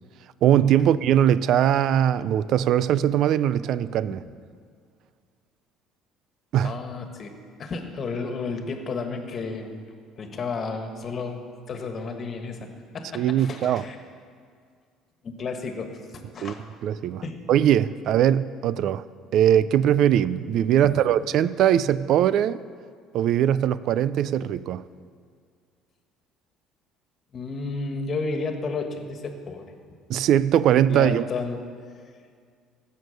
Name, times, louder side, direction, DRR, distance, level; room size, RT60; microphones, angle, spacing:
voice 1, 0.4-4.2 6.5-6.7 13.1-13.8 16.4-16.5 16.8-17.2 17.5-19.0 19.3-22.6 23.1-24.8 30.1-31.2, right 10 dB, 60° right, 17 dB, 0.4 m, -21 dB
voice 2, 6.6-7.3 7.6-9.8 10.2-11.4 11.7-12.7 12.9-14.0 15.2-16.6 17.2-17.5 20.9-21.0 27.3-29.7 30.9-31.6, left 4 dB, 40° left, 5 dB, 1.5 m, -32 dB
16.0 x 6.5 x 6.5 m, 2.1 s
cardioid pair, 105°, 0 cm